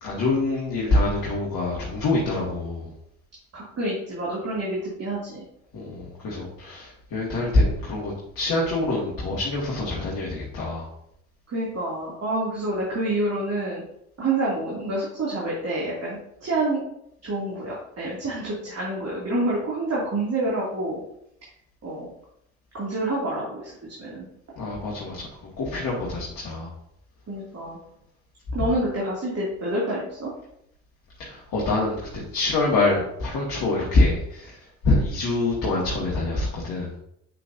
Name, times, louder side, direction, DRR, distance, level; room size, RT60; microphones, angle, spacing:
voice 1, 0.0-2.9 5.7-10.9 24.6-25.3 25.6-26.7 31.2-34.6 34.8-36.9, left 2 dB, 50° left, -5 dB, 2.1 m, -25 dB
voice 2, 3.5-5.4 11.5-13.8 14.2-16.8 17.2-21.0 21.8-22.1 22.7-24.3 27.3-27.8 28.5-30.3, right 2 dB, 40° right, -6 dB, 2.7 m, -28 dB
7.7 x 5.8 x 2.7 m, 0.76 s
figure-of-eight pair, 55°, 40 cm